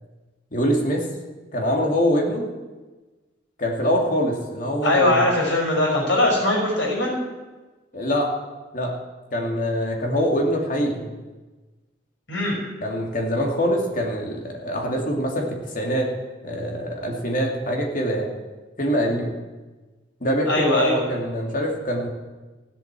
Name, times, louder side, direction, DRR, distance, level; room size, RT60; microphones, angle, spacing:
voice 1, 0.5-1.0 1.5-2.4 3.6-5.2 7.9-8.3 8.7-8.9 9.3-11.1 12.8-16.1 16.4-18.3 18.8-19.3 20.2-22.1, equal, 45° left, 0 dB, 2.6 m, -24 dB
voice 2, 4.8-7.2 12.3-12.6 20.5-21.0, left 1 dB, 80° left, -1 dB, 5.8 m, -20 dB
16.0 x 8.2 x 7.5 m, 1.2 s
head